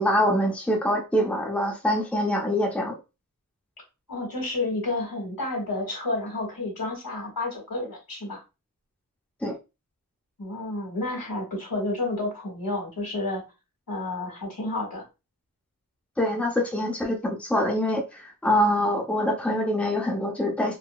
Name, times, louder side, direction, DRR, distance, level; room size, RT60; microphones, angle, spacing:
voice 1, 0.0-3.0 9.4-9.6 16.2-20.8, left 1 dB, 5° left, 0.7 m, -24 dB
voice 2, 4.1-8.4 10.4-13.4 13.9-15.0, left 2 dB, 80° left, 1.5 m, -30 dB
3.8 x 2.1 x 2.3 m
wide cardioid pair, 60°, 34 cm